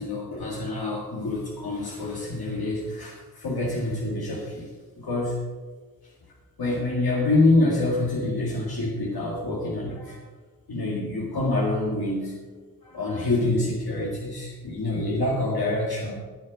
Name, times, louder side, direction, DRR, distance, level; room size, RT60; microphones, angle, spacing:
voice 1, 0.0-4.7 5.0-5.4 6.6-10.2 10.7-12.3 12.8-16.1, left 2 dB, 85° left, -4 dB, 2.0 m, -26 dB
15.0 x 7.8 x 5.0 m, 1.4 s
wide cardioid pair, 65°, 36 cm